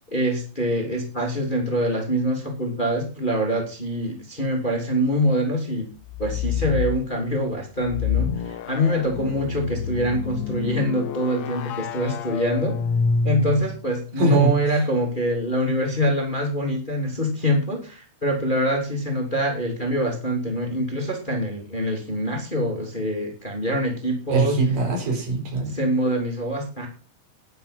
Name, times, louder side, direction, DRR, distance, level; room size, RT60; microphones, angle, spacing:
voice 1, 0.1-5.9 6.2-12.8 13.2-24.6 25.7-26.9, equal, 15° left, 2 dB, 2.7 m, -24 dB
sound 1, 6.0-7.0 7.8-13.8, left 6 dB, 70° left, 1.8 m, -28 dB
voice 2, 14.2-14.8 24.3-25.8, right 3 dB, 70° right, 4 dB, 5.6 m, -22 dB
12.0 x 10.5 x 5.8 m, 0.36 s
omnidirectional pair, 4.1 m